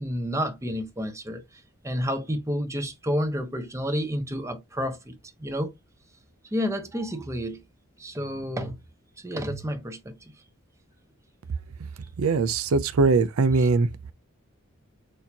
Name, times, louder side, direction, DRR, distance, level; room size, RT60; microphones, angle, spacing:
voice 1, 0.0-1.4 1.8-5.7 6.5-7.6 8.0-8.8 9.2-10.1 13.6-13.7, equal, 15° right, 0.9 m, -30 dB
voice 2, 12.2-13.9, right 4 dB, 80° right, 0.5 m, -21 dB
6.4 x 2.8 x 2.8 m
head